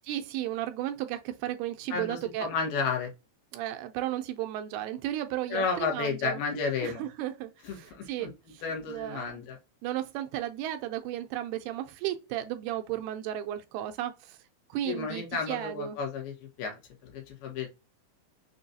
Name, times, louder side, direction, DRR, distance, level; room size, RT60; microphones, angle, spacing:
voice 1, 0.1-2.5 3.5-6.4 6.8-8.6 8.9-9.4 9.8-14.4 14.7-16.0, right 13 dB, 85° right, 2.4 m, -34 dB
voice 2, 1.9-3.1 5.5-7.1 7.6-8.3 8.6-9.6 14.8-17.7, left 5 dB, 70° left, 2.8 m, -32 dB
6.7 x 2.3 x 2.6 m
omnidirectional pair, 4.7 m